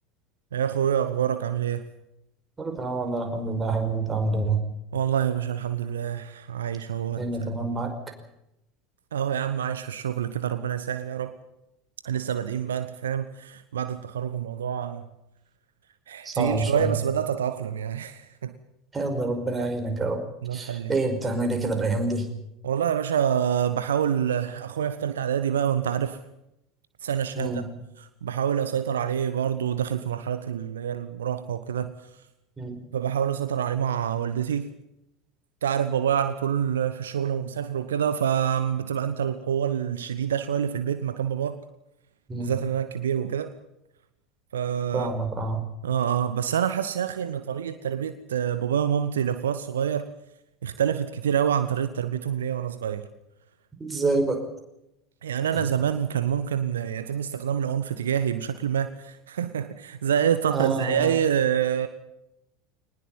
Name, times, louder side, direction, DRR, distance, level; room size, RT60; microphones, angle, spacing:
voice 1, 0.5-1.9 4.9-7.2 9.1-11.3 12.0-15.0 16.1-18.6 20.4-21.0 22.6-26.2 27.0-27.6 28.0-31.9 32.9-34.7 35.6-41.6 42.4-43.5 44.5-45.1 45.8-50.1 50.6-53.0 55.2-61.9, right 9 dB, 70° right, 11 dB, 1.1 m, -27 dB
voice 2, 2.6-4.6 7.2-7.9 16.3-17.0 18.9-20.2 20.5-22.3 27.4-27.7 32.6-32.8 42.3-42.5 44.9-45.6 53.8-54.4 60.5-61.1, right 3 dB, 15° right, 4 dB, 5.3 m, -27 dB
23.0 x 20.0 x 7.4 m, 0.84 s
figure-of-eight pair, 75°, 0 cm